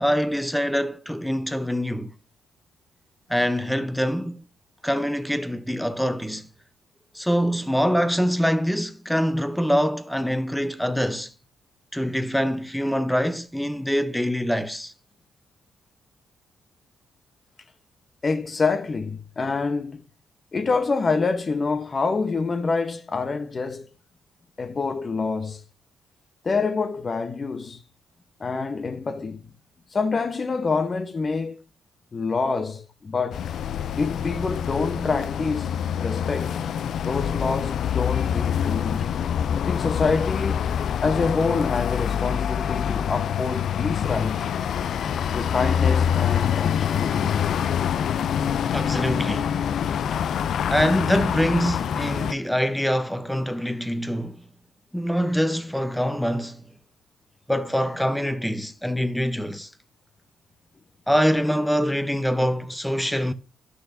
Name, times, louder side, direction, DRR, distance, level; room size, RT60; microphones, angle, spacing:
voice 1, 0.0-2.1 3.3-4.4 4.8-6.5 7.1-11.3 11.9-14.9 48.7-49.5 50.7-54.4 54.9-56.7 57.5-59.7 61.1-63.3, equal, 5° left, 0.7 m, -24 dB
voice 2, 18.2-20.0 20.5-23.9 24.6-25.6 26.4-27.8 28.4-29.5 29.9-31.6 32.1-33.5 34.0-35.7 36.0-36.6 37.0-39.1 39.6-40.7 41.0-44.5 45.3-47.4, left 4 dB, 40° left, 0.9 m, -26 dB
sound 1, 33.3-52.3, left 8 dB, 65° left, 0.3 m, -25 dB
11.5 x 6.3 x 2.6 m
supercardioid pair, 65°, 0 cm